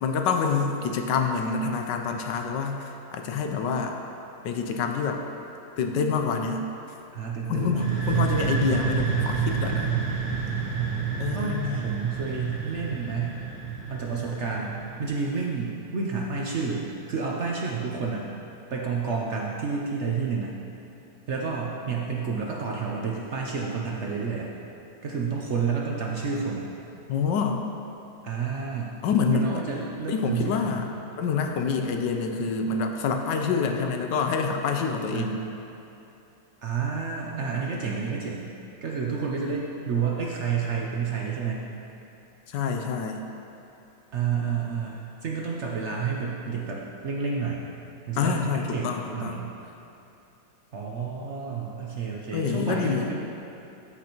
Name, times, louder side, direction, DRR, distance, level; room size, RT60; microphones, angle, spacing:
voice 1, 0.0-4.0 4.4-5.2 5.8-6.7 7.5-9.9 11.2-11.8 27.1-27.6 29.0-29.6 30.1-30.9 31.2-35.4 42.5-43.2 48.2-49.4 51.7-51.8 52.1-53.1, left 5 dB, 75° left, 4 dB, 1.3 m, -27 dB
voice 2, 7.1-8.4 11.3-13.4 13.9-18.3 18.7-20.5 21.3-24.5 25.0-26.7 28.2-29.0 29.3-30.8 35.1-35.4 36.6-38.5 38.8-41.7 44.1-47.6 48.1-49.6 50.7-53.2, right 5 dB, 60° right, -2 dB, 0.7 m, -30 dB
sound 1, 7.6-15.3, right 6 dB, 80° right, 2.0 m, -29 dB
13.0 x 6.0 x 3.0 m, 2.9 s
omnidirectional pair, 2.0 m